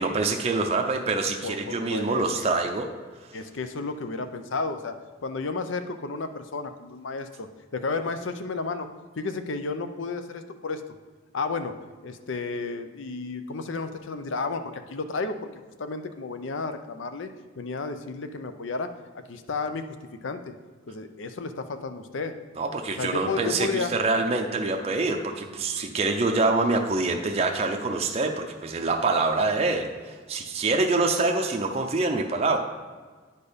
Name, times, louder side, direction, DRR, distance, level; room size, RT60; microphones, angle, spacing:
voice 1, 0.0-2.9 22.6-32.6, right 3 dB, 30° right, 3 dB, 0.5 m, -25 dB
voice 2, 1.4-2.5 3.3-4.9 5.2-8.9 9.2-10.8 11.3-11.8 12.0-15.4 15.8-17.3 17.6-20.0 20.2-20.5 20.9-22.3 23.0-23.9, left 4 dB, 70° left, 9 dB, 0.6 m, -32 dB
9.6 x 4.4 x 5.1 m, 1.5 s
head